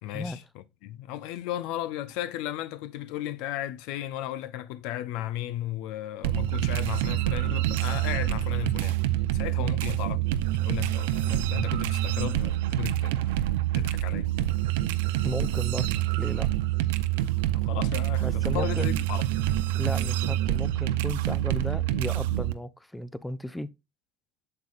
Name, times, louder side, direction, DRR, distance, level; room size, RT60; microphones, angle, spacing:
voice 1, 0.0-9.0 9.3-13.4 13.7-14.3 17.5-19.5, left 13 dB, 70° left, 0.6 m, -35 dB
sound 1, 6.2-22.5, right 14 dB, 85° right, 0.6 m, -27 dB
voice 2, 15.2-16.5 18.2-18.9 19.7-23.7, left 1 dB, 5° left, 0.5 m, -35 dB
8.0 x 6.7 x 2.5 m
supercardioid pair, 100°, 0 cm